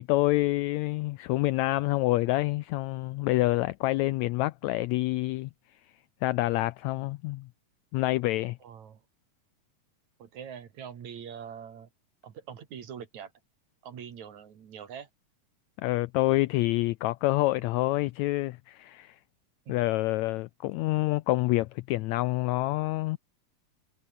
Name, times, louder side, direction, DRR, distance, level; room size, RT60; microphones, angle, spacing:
voice 1, 0.0-5.5 6.2-7.5 7.9-8.6 15.8-19.1 19.7-23.2, left 19 dB, 90° left, 1.6 m, -27 dB
voice 2, 8.6-9.0 10.2-11.9 12.2-13.3 13.8-15.1 19.7-19.8, right 8 dB, 60° right, 3.5 m, -43 dB
omnidirectional pair, 3.8 m